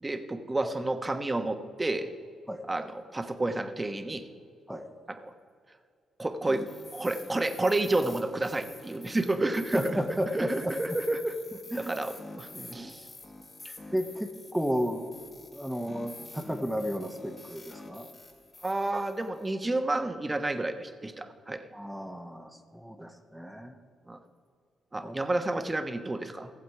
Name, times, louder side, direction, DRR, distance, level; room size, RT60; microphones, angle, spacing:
voice 1, 0.0-2.1 2.7-2.8 3.1-4.2 5.2-5.3 6.2-6.7 6.9-9.8 10.3-11.3 11.8-13.1 13.6-13.7 18.6-21.6 24.1-24.2 24.9-26.5, right 2 dB, 25° right, 8 dB, 1.1 m, -30 dB
sound 1, 6.4-19.5, left 2 dB, 40° left, 2.4 m, -47 dB
voice 2, 9.7-11.0 11.7-11.9 13.9-18.1 21.7-23.8 25.0-25.2, equal, 5° right, 5 dB, 1.2 m, -33 dB
15.5 x 7.4 x 4.8 m, 2.2 s
supercardioid pair, 50°, 0 cm